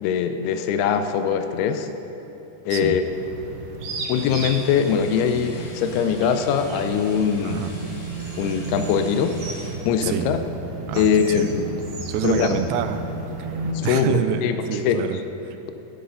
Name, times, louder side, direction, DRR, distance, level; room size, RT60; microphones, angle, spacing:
voice 1, 0.0-1.9 2.7-3.0 4.1-7.6 8.4-9.4 9.8-10.4 11.0-11.7 12.2-12.6 13.8-14.6 14.8-15.1, left 7 dB, 85° left, 8 dB, 2.6 m, -22 dB
sound 1, 2.9-13.7, right 3 dB, 60° right, 2.1 m, -33 dB
sound 2, 4.1-9.8, left 1 dB, 70° left, 5.6 m, -45 dB
voice 2, 10.0-10.4 10.9-11.5 12.1-13.0 13.4-15.6, right 8 dB, 80° right, 8 dB, 2.3 m, -27 dB
16.5 x 11.5 x 3.9 m, 3.0 s
omnidirectional pair, 4.6 m